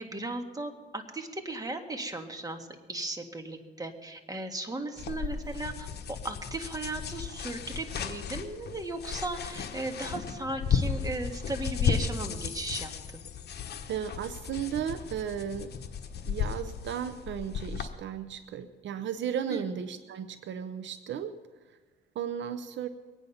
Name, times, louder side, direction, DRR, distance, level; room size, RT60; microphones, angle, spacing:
voice 1, 0.0-12.9 19.5-19.6, right 2 dB, 20° right, 5 dB, 1.8 m, -36 dB
sound 1, 5.0-17.9, left 7 dB, 55° left, 1.1 m, -34 dB
voice 2, 13.9-15.7 16.3-21.3 22.2-22.9, right 8 dB, 70° right, 11 dB, 0.7 m, -35 dB
22.5 x 9.2 x 5.6 m, 1.4 s
cardioid pair, 90°, 20 cm